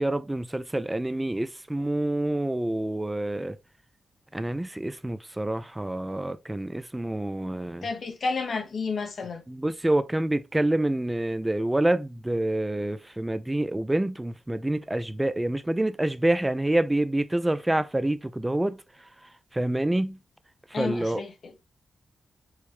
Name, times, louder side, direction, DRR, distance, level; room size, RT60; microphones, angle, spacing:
voice 1, 0.0-3.6 4.3-7.9 9.5-18.8 19.5-20.2 20.8-21.2, right 1 dB, 15° right, 0.3 m, -27 dB
voice 2, 7.8-9.5 20.7-21.6, left 4 dB, 65° left, 0.7 m, -31 dB
4.8 x 2.1 x 3.1 m
cardioid pair, 55°, 0 cm